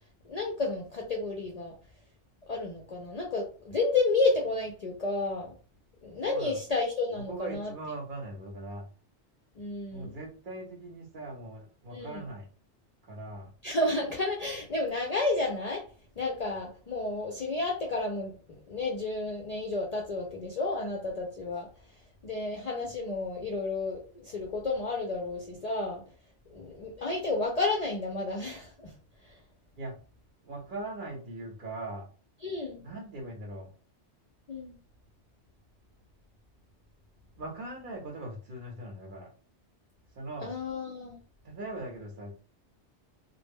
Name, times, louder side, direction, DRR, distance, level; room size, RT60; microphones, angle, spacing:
voice 1, 0.2-1.7 2.5-5.6 6.0-7.7 9.6-10.1 11.9-12.2 13.6-15.8 16.2-21.7 22.2-26.0 26.5-28.9 29.2-29.4 32.4-32.8 34.5-34.7 40.4-41.2, left 3 dB, 55° left, 0 dB, 0.4 m, -31 dB
voice 2, 6.2-6.6 7.3-8.9 9.9-12.5 13.0-13.5 29.8-29.9 30.4-32.1 32.8-33.7 37.4-39.3 40.2-40.5 41.4-42.3, right 2 dB, 55° right, 1 dB, 0.7 m, -40 dB
2.1 x 2.0 x 3.4 m, 0.38 s
omnidirectional pair, 1.2 m